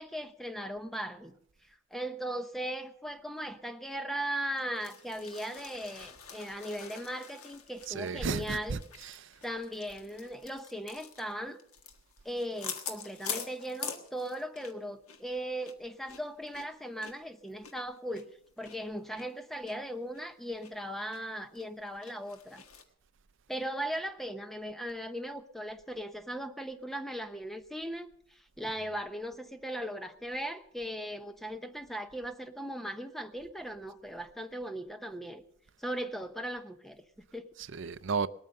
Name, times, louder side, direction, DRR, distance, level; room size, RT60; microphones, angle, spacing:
voice 1, 0.0-1.3 1.7-8.8 9.4-11.6 12.2-18.3 18.6-22.6 23.5-35.4 35.8-37.5, equal, ahead, 0.8 m, -38 dB
sound 1, 4.5-14.8 15.1-15.2 15.6-18.8 19.2-19.3 19.7-19.8 20.1-20.7 21.1-21.2 21.6-22.8, left 6 dB, 90° left, 1.6 m, -45 dB
voice 2, 7.9-9.3 37.6-38.3, right 5 dB, 60° right, 0.5 m, -34 dB
19.5 x 9.0 x 6.6 m
head